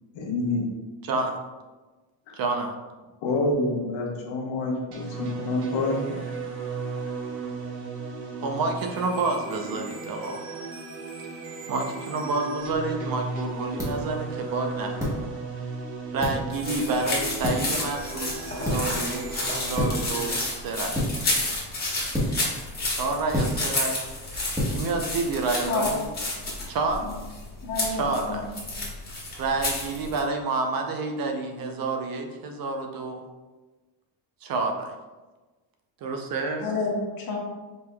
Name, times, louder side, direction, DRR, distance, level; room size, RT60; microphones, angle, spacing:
voice 1, 0.1-0.7 3.2-6.2, left 2 dB, 70° left, 0 dB, 1.0 m, -27 dB
voice 2, 1.0-1.4 2.4-2.7 8.4-10.4 11.7-15.2 15.5-15.7 16.1-21.0 22.8-24.0 24.7-26.0 26.7-27.0 27.9-28.5 29.4-33.2 34.4-34.9 36.0-36.7, right 3 dB, 45° right, 4 dB, 0.5 m, -29 dB
sound 1, 4.9-20.4, right 4 dB, 70° right, 1.1 m, -36 dB
sound 2, 12.6-26.1, equal, 5° right, 1.1 m, -33 dB
sound 3, 16.5-30.2, left 2 dB, 20° left, 1.2 m, -31 dB
voice 3, 27.6-28.5 36.6-37.4, left 3 dB, 45° left, -1 dB, 1.0 m, -29 dB
5.2 x 3.4 x 2.2 m, 1.2 s
cardioid pair, 135°, 49 cm